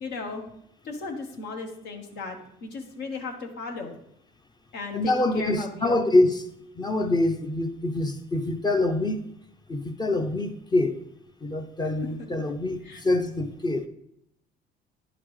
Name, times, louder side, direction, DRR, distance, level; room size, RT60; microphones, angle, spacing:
voice 1, 0.0-0.4 0.8-4.0 4.7-6.0 12.8-13.0, left 4 dB, 75° left, 1.3 m, -36 dB
voice 2, 4.9-6.5 6.8-9.2 9.7-11.0 11.4-13.9, left 2 dB, 25° left, 0.6 m, -25 dB
9.7 x 5.8 x 3.2 m
cardioid pair, 110°, 17 cm